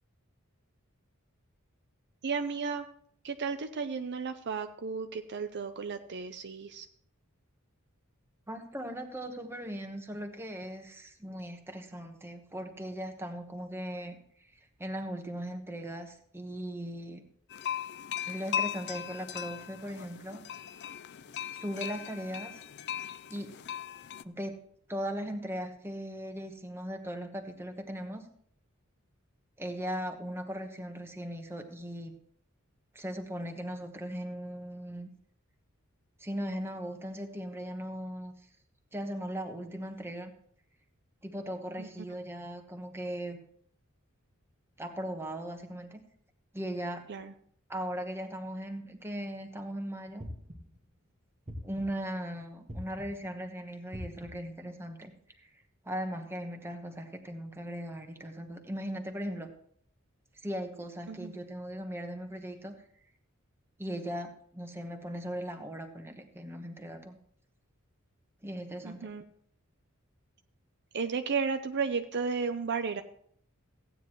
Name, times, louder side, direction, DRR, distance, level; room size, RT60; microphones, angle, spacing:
voice 1, 2.2-2.9 3.2-6.9 41.8-41.9 47.1-47.3 61.1-61.4 68.8-69.2 70.9-73.0, right 5 dB, 55° right, 8 dB, 0.6 m, -33 dB
voice 2, 8.5-17.2 18.3-20.4 21.5-22.6 23.3-23.5 24.2-24.6 24.9-28.3 29.6-32.1 32.9-35.1 36.2-38.3 38.9-40.3 41.2-43.4 44.8-46.0 46.5-47.0 47.7-50.2 51.6-55.5 55.8-59.5 60.3-62.7 63.8-67.2 68.4-69.1, equal, 10° right, 4 dB, 1.2 m, -38 dB
sound 1, 17.5-24.2, left 9 dB, 55° left, 0.4 m, -38 dB
sound 2, 50.2-50.8 51.5-52.1 52.7-53.3 53.9-54.6, equal, 30° right, 1.4 m, -43 dB
15.0 x 9.3 x 3.1 m, 0.62 s
head